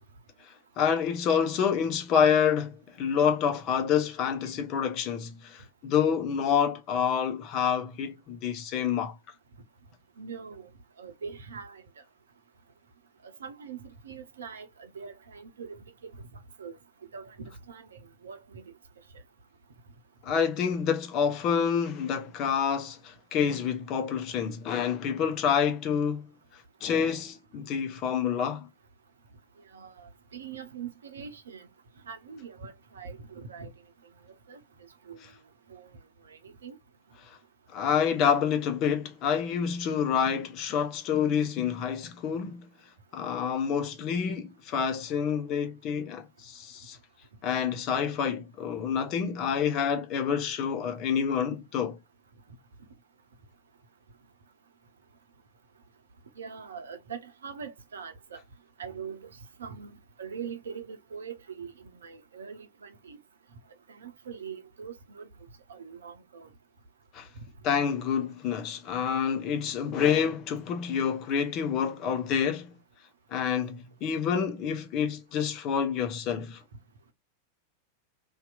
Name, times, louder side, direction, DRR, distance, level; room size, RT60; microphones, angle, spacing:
voice 1, 0.4-9.1 20.2-26.3 26.8-28.7 37.3-37.4 37.7-42.7 43.1-47.0 47.4-52.0 67.1-67.3 67.6-72.7 73.3-76.6, left 7 dB, 40° left, 0.7 m, -28 dB
voice 2, 10.2-10.7 11.0-11.8 13.2-16.8 17.1-18.7 29.7-31.7 32.1-33.7 34.5-34.6 35.1-35.2 35.7-35.9 36.3-36.8 56.4-58.4 58.8-59.3 59.6-59.9 60.2-63.2 63.9-65.3 65.7-66.5, right 6 dB, 65° right, 0.7 m, -42 dB
2.8 x 2.4 x 2.3 m
figure-of-eight pair, 90°, 0 cm